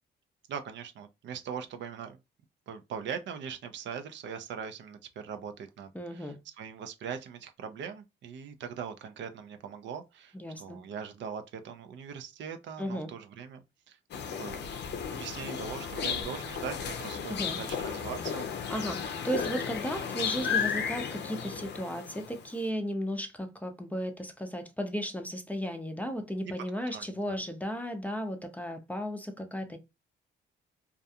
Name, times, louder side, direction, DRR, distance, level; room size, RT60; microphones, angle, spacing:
voice 1, 0.5-2.2 2.7-14.0 14.3-14.6 15.1-18.7 26.9-27.4, right 7 dB, 65° right, 0.5 m, -41 dB
voice 2, 5.9-6.4 10.3-10.8 12.8-13.1 17.3-17.6 18.7-29.8, equal, 10° left, 0.5 m, -35 dB
sound 1, 14.1-22.5, left 7 dB, 60° left, 0.5 m, -34 dB
2.4 x 2.3 x 2.6 m
cardioid pair, 90°, 20 cm